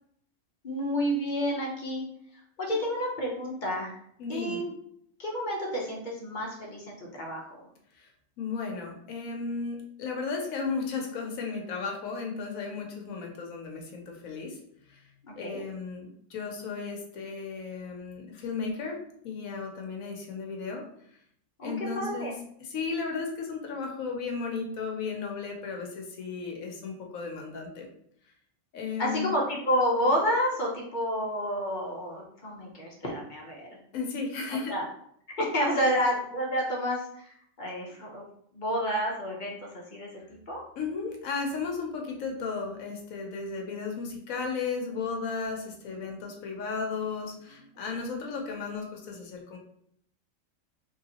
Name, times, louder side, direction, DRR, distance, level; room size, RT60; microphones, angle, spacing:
voice 1, 0.6-2.0 2.6-3.9 4.3-4.7 5.2-7.7 15.2-15.6 21.6-22.4 29.0-33.7 34.5-34.9 35.3-38.2 38.5-40.6, equal, 40° left, -2 dB, 0.8 m, -30 dB
voice 2, 4.2-4.6 8.0-8.1 8.4-14.6 14.9-15.0 15.4-20.8 21.6-22.3 22.6-27.9 28.7-29.3 33.9-34.8 35.8-35.9 40.8-49.6, left 4 dB, 90° left, 1 dB, 1.2 m, -35 dB
3.9 x 3.1 x 2.8 m, 0.68 s
omnidirectional pair, 1.4 m